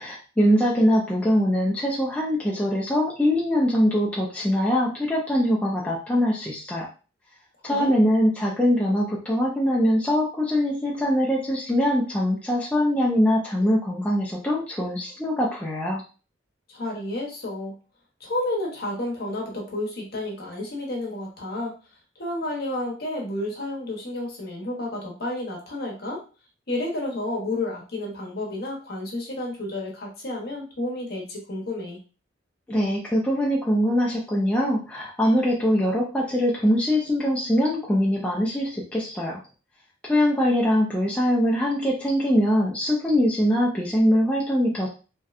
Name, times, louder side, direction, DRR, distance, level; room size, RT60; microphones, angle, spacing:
voice 1, 0.0-6.9 7.6-16.0 32.7-39.4 40.1-44.9, equal, 5° left, -5 dB, 0.3 m, -22 dB
voice 2, 16.7-17.7 18.2-21.7 22.2-26.2 26.7-32.0, left 1 dB, 50° left, -1 dB, 0.8 m, -31 dB
2.7 x 2.2 x 2.3 m, 0.35 s
head